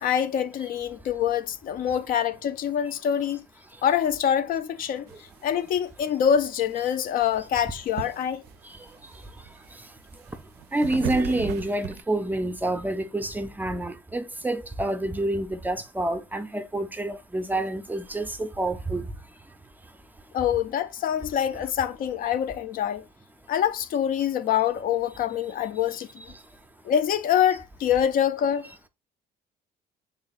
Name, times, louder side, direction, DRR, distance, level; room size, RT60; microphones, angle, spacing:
voice 1, 0.0-3.4 3.8-5.1 5.4-8.4 20.3-23.0 23.5-26.1 26.9-28.7, left 9 dB, 55° left, 0.4 m, -25 dB
sound 1, 5.1-12.0, right 9 dB, 80° right, 0.4 m, -38 dB
voice 2, 10.7-19.0, right 1 dB, 10° right, 0.4 m, -28 dB
3.6 x 2.3 x 4.0 m
cardioid pair, 110°, 17 cm